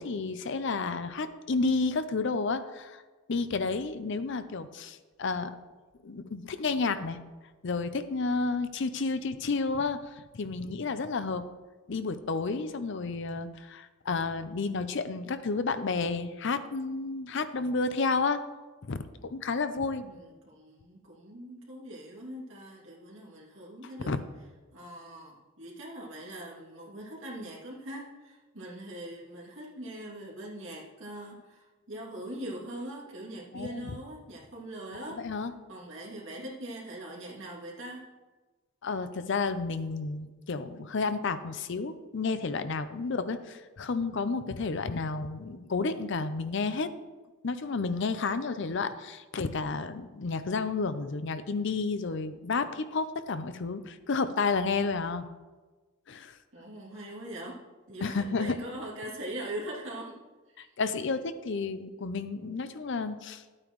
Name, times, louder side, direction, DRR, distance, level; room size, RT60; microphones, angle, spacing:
voice 1, 0.0-3.0 3.3-5.6 6.0-7.2 7.6-11.5 11.9-18.4 18.8-20.0 24.1-24.2 33.5-33.9 35.2-35.5 38.8-46.9 47.4-55.3 56.1-56.4 58.0-58.6 60.6-63.4, left 4 dB, 60° left, 11 dB, 0.5 m, -31 dB
voice 2, 20.0-24.1 24.7-35.2 35.7-38.1 56.5-57.6 57.9-60.2 60.5-60.8 61.0-61.1, right 1 dB, 65° right, -4 dB, 2.5 m, -42 dB
12.0 x 8.8 x 3.1 m, 1.3 s
head